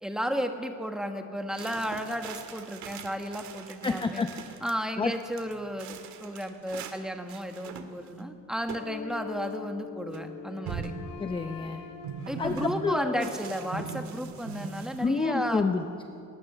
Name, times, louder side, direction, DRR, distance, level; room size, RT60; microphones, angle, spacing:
voice 1, 0.0-4.2 4.6-10.9 12.3-15.6, equal, ahead, 5 dB, 1.4 m, -33 dB
sound 1, 1.5-4.7 5.1-7.0 7.3-8.2 8.7-8.9 9.2-9.3 10.1-10.2 10.6-11.1 12.0-12.7 13.2-15.0, right 6 dB, 65° right, 2.0 m, -41 dB
voice 2, 3.8-4.3 5.0-5.1 11.2-11.8 12.4-13.3 13.7-13.8 15.0-16.1, left 4 dB, 15° left, 7 dB, 0.7 m, -29 dB
Mallet percussion, 8.8-13.2, left 7 dB, 50° left, 2.4 m, -43 dB
Wind instrument woodwind instrument, 9.8-13.7, left 4 dB, 80° left, 3.3 m, -48 dB
22.0 x 19.5 x 6.9 m, 2.5 s
cardioid pair, 160°, 31 cm